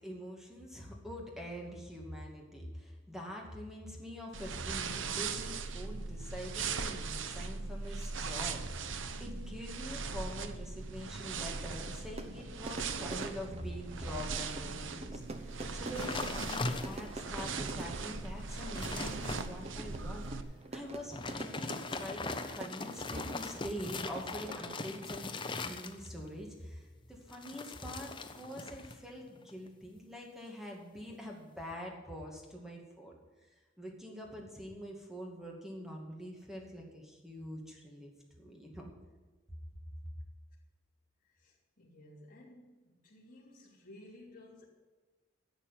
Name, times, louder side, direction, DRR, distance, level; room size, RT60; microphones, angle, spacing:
voice 1, 0.0-20.3 20.7-25.3 25.6-33.2 33.8-38.1 38.4-38.9, equal, ahead, -1 dB, 2.3 m, -45 dB
sound 1, 4.3-20.4, right 4 dB, 70° right, 0.8 m, -39 dB
Fire / Fireworks, 11.3-25.3, right 2 dB, 30° right, 0.9 m, -46 dB
sound 2, 16.0-17.3 17.8-17.9 18.3-19.5 21.0-26.3 27.3-29.0 29.3-29.7, left 3 dB, 25° left, 0.7 m, -40 dB
voice 2, 41.2-44.7, left 1 dB, 40° left, -5 dB, 3.1 m, -56 dB
11.5 x 7.3 x 9.0 m, 1.3 s
head